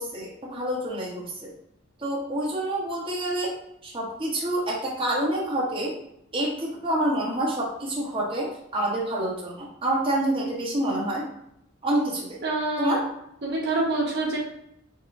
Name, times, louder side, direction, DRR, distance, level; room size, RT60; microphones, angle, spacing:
voice 1, 0.0-1.5 2.0-3.5 3.8-5.9 6.3-11.2 11.8-12.4 12.8-13.0, right 1 dB, 25° right, -5 dB, 1.1 m, -27 dB
voice 2, 12.4-13.0 13.4-14.4, right 2 dB, 55° right, -3 dB, 1.0 m, -26 dB
4.7 x 2.2 x 4.7 m, 0.76 s
head